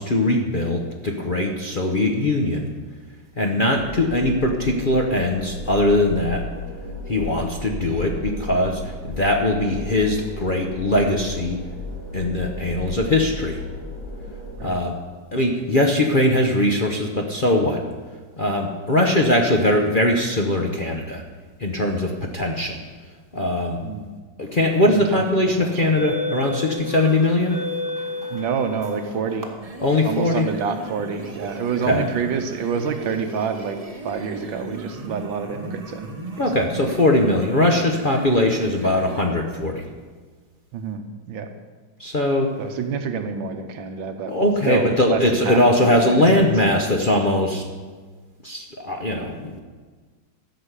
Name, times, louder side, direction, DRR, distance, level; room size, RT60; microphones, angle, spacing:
voice 1, 0.0-2.7 3.4-6.5 7.1-11.6 12.1-13.6 14.6-15.0 15.3-17.8 18.4-21.2 21.6-22.8 23.3-23.8 24.4-27.6 29.8-30.5 31.9-32.1 36.4-39.9 42.0-42.5 44.3-47.6 48.4-49.6, left 1 dB, 40° left, 1 dB, 0.8 m, -21 dB
sound 1, 3.8-14.6, left 2 dB, 85° left, 4.8 m, -34 dB
voice 2, 12.8-13.3 14.6-14.8 15.3-15.5 23.8-24.1 24.9-25.2 25.6-25.9 28.3-29.5 30.0-33.8 34.0-36.1 36.4-36.5 40.7-41.5 42.6-44.4 44.7-46.5, right 6 dB, 80° right, 7 dB, 1.7 m, -28 dB
sound 2, 25.7-29.5, left 2 dB, 10° right, 1.3 m, -31 dB
sound 3, 29.5-39.3, right 2 dB, 30° right, 0.7 m, -37 dB
13.5 x 6.2 x 8.2 m, 1.4 s
omnidirectional pair, 2.1 m